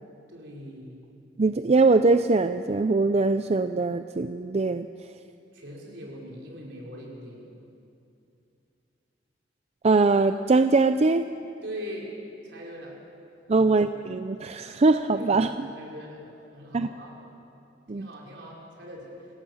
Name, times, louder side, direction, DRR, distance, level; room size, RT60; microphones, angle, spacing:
voice 1, 0.3-1.0 5.5-7.5 11.6-12.1 12.4-13.0 13.5-13.9 15.1-17.2 17.9-19.3, equal, 70° right, -3 dB, 5.3 m, -41 dB
voice 2, 1.4-4.9 9.8-11.3 13.5-15.5 16.7-16.9 17.9-18.1, right 3 dB, 35° right, 9 dB, 0.5 m, -22 dB
26.0 x 17.0 x 7.1 m, 2.6 s
head